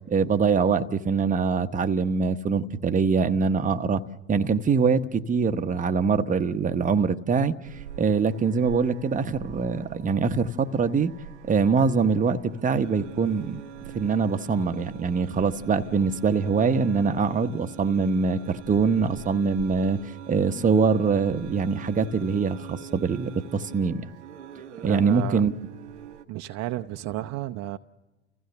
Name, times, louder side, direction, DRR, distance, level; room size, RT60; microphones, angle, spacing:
voice 1, 0.1-4.0 4.3-7.5 8.0-11.1 11.5-20.0 20.3-24.1 24.8-25.5, right 5 dB, 25° right, 0.9 m, -23 dB
sound 1, 7.6-26.2, right 10 dB, 90° right, 0.9 m, -44 dB
voice 2, 24.8-25.4 26.3-27.8, right 15 dB, 50° right, 0.6 m, -32 dB
29.5 x 16.0 x 6.8 m
hypercardioid pair, 85°, 34 cm